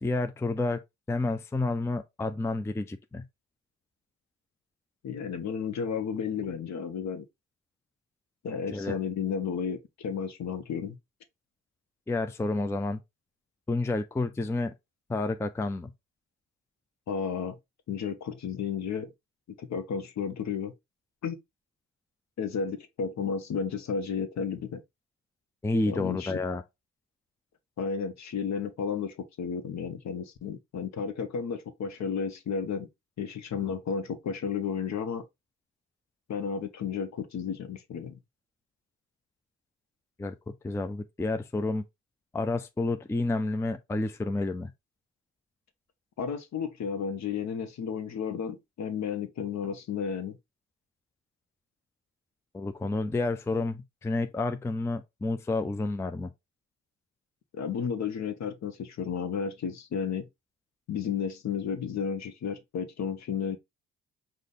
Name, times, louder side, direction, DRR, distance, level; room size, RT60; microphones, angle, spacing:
voice 1, 0.0-0.8 1.1-3.3 8.7-9.0 12.1-13.0 13.7-14.7 15.1-15.9 25.6-26.6 40.2-41.8 42.3-44.7 52.5-56.3, left 2 dB, 10° left, 0.5 m, -30 dB
voice 2, 5.0-7.3 8.4-11.0 17.1-17.6 17.9-19.1 19.6-20.7 21.2-21.4 22.4-24.8 25.9-26.3 27.8-32.9 33.2-35.2 36.3-38.2 46.2-50.4 57.5-60.3 60.9-63.6, left 6 dB, 50° left, 0.9 m, -32 dB
5.0 x 2.2 x 3.9 m
hypercardioid pair, 50°, 35 cm